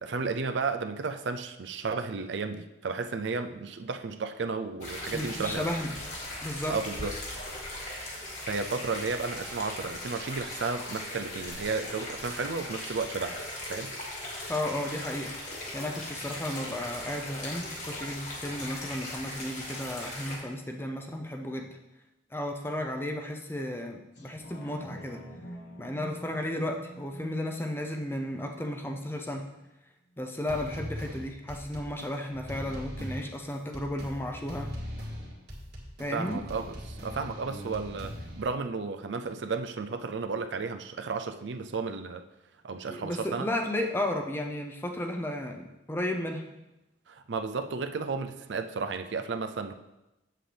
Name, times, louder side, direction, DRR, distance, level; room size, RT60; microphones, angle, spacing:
voice 1, 0.0-5.7 6.7-7.2 8.5-13.4 13.7-14.0 36.1-42.2 42.6-43.5 47.1-49.7, right 4 dB, 80° right, 7 dB, 0.5 m, -33 dB
sound 1, 4.8-20.4, left 1 dB, 40° left, 1.8 m, -39 dB
voice 2, 5.1-5.9 6.4-6.8 14.5-21.8 22.3-25.2 25.8-29.5 30.2-34.7 36.0-36.4 42.9-46.4, left 1 dB, 10° left, 3 dB, 0.6 m, -34 dB
sound 2, 24.2-29.2 29.6-29.7, equal, 70° left, 1.3 m, -47 dB
sound 3, 30.5-38.4, equal, 60° right, 1.9 m, -40 dB
7.7 x 7.5 x 3.4 m, 0.96 s
head